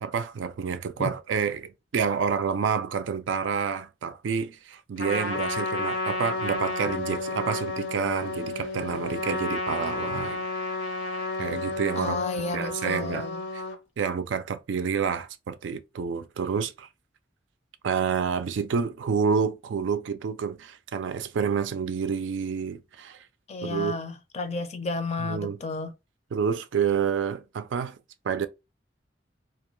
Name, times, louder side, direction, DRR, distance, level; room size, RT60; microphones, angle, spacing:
voice 1, 0.0-10.4 11.4-12.2 12.5-13.6 14.0-16.9 17.8-23.2 23.6-23.9 25.2-25.6 26.3-28.0 28.2-28.5, right 6 dB, 90° right, 0.4 m, -28 dB
Trumpet, 5.0-13.8, left 2 dB, 85° left, 0.8 m, -31 dB
voice 2, 12.0-13.4 23.5-25.9, left 3 dB, 35° left, 0.4 m, -32 dB
2.4 x 2.2 x 3.1 m
head